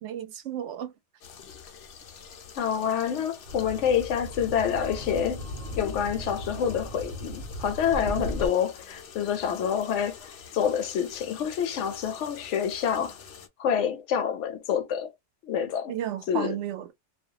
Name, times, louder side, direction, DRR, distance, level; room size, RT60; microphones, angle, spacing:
voice 1, 0.0-0.9 15.9-16.9, right 10 dB, 85° right, 0.9 m, -33 dB
sound 1, 1.2-13.5, left 7 dB, 60° left, 0.7 m, -47 dB
voice 2, 2.6-5.5 5.8-13.2 13.6-15.1 15.5-15.9 16.3-16.6, left 8 dB, 85° left, 0.9 m, -27 dB
sound 2, 3.5-8.5, equal, 55° right, 0.9 m, -37 dB
2.3 x 2.2 x 2.7 m
omnidirectional pair, 1.2 m